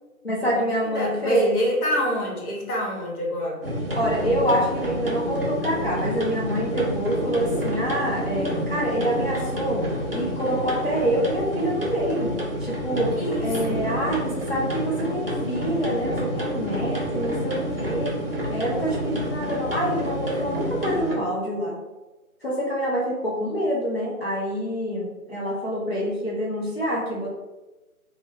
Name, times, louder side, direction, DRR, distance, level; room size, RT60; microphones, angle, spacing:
voice 1, 0.2-1.6 4.0-9.8 10.1-12.3 12.6-13.1 13.4-18.1 18.5-21.8 22.4-27.3, equal, 50° left, -6 dB, 0.4 m, -26 dB
voice 2, 0.9-3.6 13.2-13.8, equal, 80° left, -1 dB, 1.0 m, -27 dB
sound 1, 3.6-21.2, equal, 40° right, 0.5 m, -29 dB
2.1 x 2.1 x 3.1 m, 1.1 s
hypercardioid pair, 180°, 43 cm